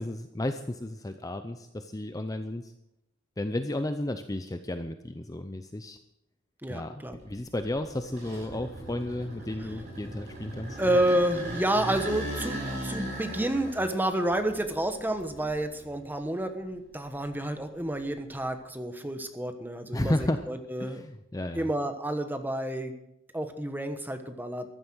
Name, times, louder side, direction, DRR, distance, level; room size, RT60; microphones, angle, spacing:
voice 1, 0.0-2.7 3.4-6.0 6.7-10.8 19.9-20.4 20.8-21.7, left 1 dB, 15° left, 8 dB, 0.6 m, -33 dB
voice 2, 6.6-7.2 10.8-21.0 21.5-22.9 23.3-24.7, right 1 dB, 10° right, 7 dB, 1.2 m, -30 dB
sound 1, 7.1-16.1 16.6-18.4, right 1 dB, 35° right, 6.9 m, -39 dB
14.5 x 11.5 x 6.3 m, 0.85 s
head